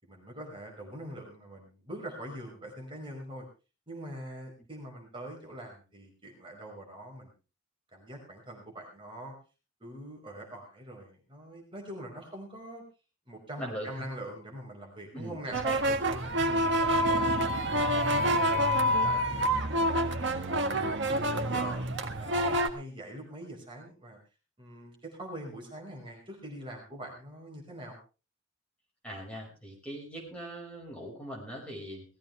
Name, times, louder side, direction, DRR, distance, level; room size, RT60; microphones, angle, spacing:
voice 1, 0.0-3.5 3.9-7.3 7.9-9.4 9.8-12.8 13.3-15.6 16.4-16.7 17.0-20.0 20.4-21.9 22.2-24.2 24.6-28.0, right 1 dB, 25° right, 0 dB, 5.2 m, -44 dB
voice 2, 13.6-14.1 15.1-15.4 15.6-16.0 16.5-16.7 29.0-32.0, equal, 5° left, -2 dB, 5.5 m, -40 dB
sound 1, 15.5-22.7, equal, 60° right, 1.8 m, -27 dB
19.0 x 15.0 x 3.4 m, 0.32 s
head